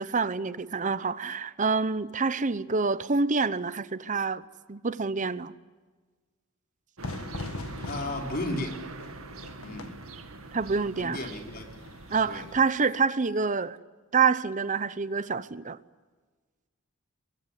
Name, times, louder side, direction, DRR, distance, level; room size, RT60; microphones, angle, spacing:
voice 1, 0.0-4.4 4.7-5.5 10.5-11.3 12.1-13.8 14.1-15.8, right 4 dB, 35° right, 0.8 m, -27 dB
Fire / Fireworks, 7.0-12.5, left 2 dB, 85° left, 1.7 m, -42 dB
sound 1, 7.0-12.7, right 3 dB, 80° right, 2.1 m, -43 dB
voice 2, 7.8-8.8 9.6-10.0 11.0-11.7 12.3-12.4, left 1 dB, 45° left, 4.8 m, -34 dB
23.5 x 22.5 x 9.7 m
head